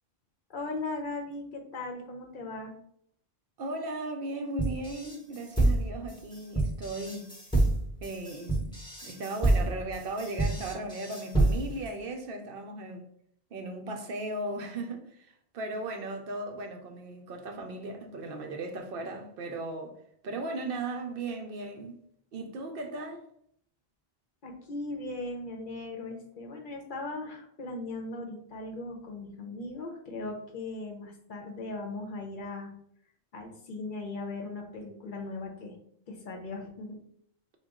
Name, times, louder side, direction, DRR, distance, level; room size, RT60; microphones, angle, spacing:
voice 1, 0.5-2.7 24.4-32.7 33.3-35.8 36.1-37.0, left 2 dB, 60° left, 0.8 m, -38 dB
voice 2, 3.6-7.3 8.0-8.7 9.0-13.0 13.5-20.0 20.2-22.0 22.3-23.2, right 2 dB, 65° right, 0.7 m, -37 dB
sound 1, 4.6-11.9, right 2 dB, 5° left, 0.8 m, -28 dB
3.9 x 2.2 x 3.5 m
omnidirectional pair, 1.0 m